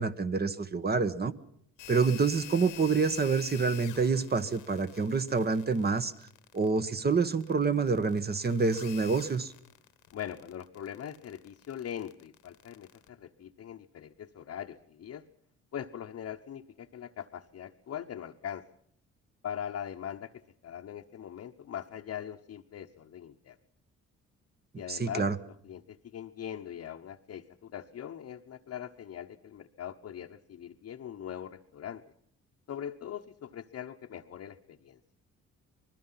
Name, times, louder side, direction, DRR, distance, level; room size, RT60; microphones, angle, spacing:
voice 1, 0.0-1.3 1.9-6.1 6.5-9.5 24.9-25.4, right 4 dB, 30° right, 10 dB, 1.3 m, -27 dB
sound 1, 1.8-13.1, left 13 dB, 85° left, 1.5 m, -49 dB
voice 2, 10.1-15.2 15.7-18.6 19.4-23.6 24.8-32.0 32.7-35.0, left 9 dB, 55° left, 1 dB, 1.1 m, -41 dB
25.5 x 20.5 x 5.8 m, 0.64 s
cardioid pair, 90°, 30 cm